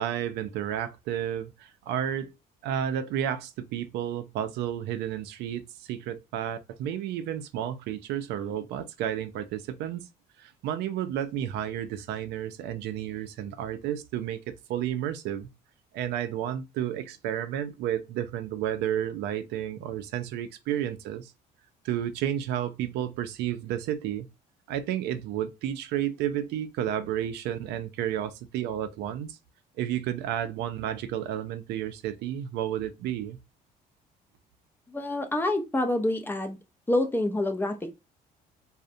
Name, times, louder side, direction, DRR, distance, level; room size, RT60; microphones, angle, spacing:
voice 1, 0.0-2.3 2.6-10.0 10.4-15.5 15.9-21.3 21.8-24.3 24.7-29.4 29.8-33.4, right 10 dB, 80° right, 0.4 m, -31 dB
voice 2, 34.9-36.6 36.9-37.9, left 1 dB, 10° left, 0.4 m, -27 dB
2.4 x 2.1 x 2.5 m
cardioid pair, 110°, 17 cm